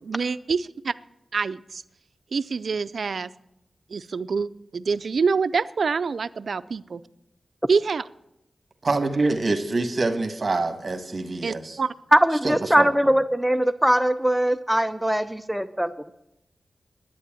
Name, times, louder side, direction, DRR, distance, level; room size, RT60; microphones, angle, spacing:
voice 1, 0.0-0.9 1.3-1.8 2.3-3.3 3.9-7.0 7.7-8.0 11.4-11.9, right 5 dB, 65° right, 15 dB, 0.4 m, -26 dB
voice 2, 8.8-11.8 12.4-13.1, right 3 dB, 45° right, 7 dB, 1.6 m, -26 dB
voice 3, 12.1-15.9, equal, 5° right, 10 dB, 0.5 m, -21 dB
11.0 x 9.2 x 9.0 m, 0.86 s
wide cardioid pair, 110°, 0 cm